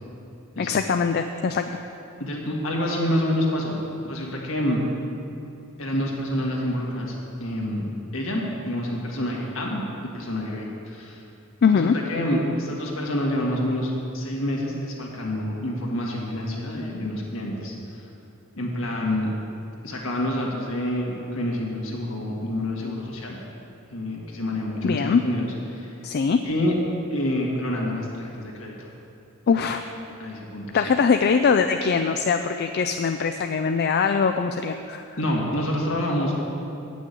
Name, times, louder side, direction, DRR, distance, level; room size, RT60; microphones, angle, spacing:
voice 1, 0.6-1.7 11.6-11.9 24.8-25.2 26.0-26.4 29.5-29.8 30.7-35.1, left 5 dB, 50° left, 6 dB, 0.4 m, -22 dB
voice 2, 2.2-4.8 5.8-7.1 7.4-7.9 8.1-11.2 11.7-18.0 18.6-19.3 19.8-23.4 23.9-25.9 26.4-26.8 27.1-28.9 30.2-30.8 35.2-36.4, left 1 dB, 70° left, -2 dB, 1.9 m, -27 dB
9.0 x 6.2 x 8.3 m, 2.7 s
head